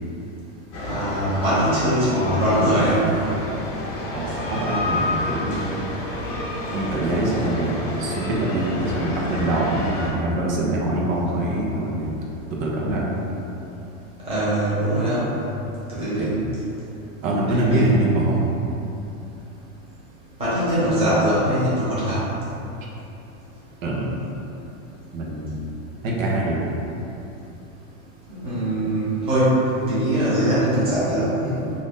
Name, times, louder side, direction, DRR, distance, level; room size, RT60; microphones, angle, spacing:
sound 1, 0.7-10.1, left 1 dB, 40° left, 0.6 m, -29 dB
voice 1, 0.8-3.1 14.3-15.3 15.9-16.4 17.5-18.2 20.4-22.2 28.3-31.5, right 1 dB, 15° right, -11 dB, 0.8 m, -22 dB
voice 2, 4.1-5.9 6.7-12.1 12.5-13.2 16.0-16.3 17.2-18.6 23.8-24.2 25.1-25.7 26.0-26.7, right 1 dB, 80° right, -3 dB, 0.7 m, -24 dB
2.6 x 2.5 x 3.6 m, 2.8 s
supercardioid pair, 160°, 39 cm